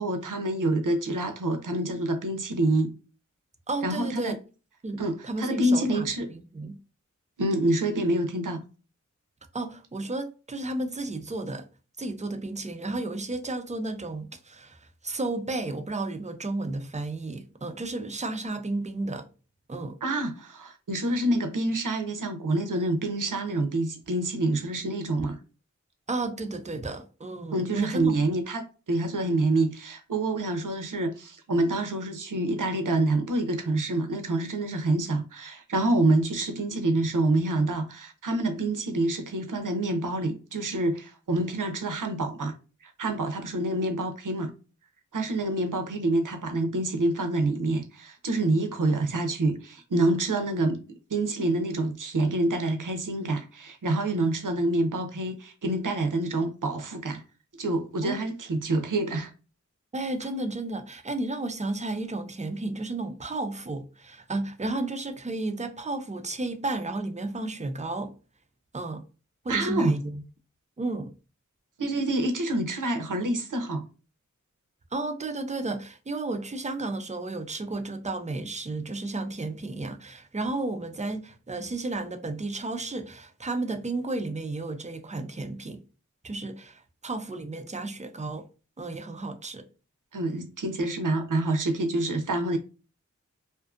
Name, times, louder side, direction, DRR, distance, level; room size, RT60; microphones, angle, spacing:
voice 1, 0.0-2.9 3.8-4.3 5.0-6.3 7.4-8.6 20.0-25.4 27.5-42.5 42.8-44.5 45.1-50.8 51.1-57.2 57.6-59.3 69.5-69.9 71.8-73.9 90.1-92.6, right 2 dB, 80° right, 0.6 m, -27 dB
voice 2, 3.7-4.4 4.8-6.8 9.5-11.7 12.0-19.3 19.7-20.0 26.1-28.1 58.0-58.2 59.9-68.1 68.7-69.0 69.4-70.2 70.8-71.1 74.9-85.8 86.2-88.5 88.8-89.7, right 2 dB, 25° right, 0.4 m, -33 dB
2.5 x 2.4 x 2.4 m
wide cardioid pair, 50°, 31 cm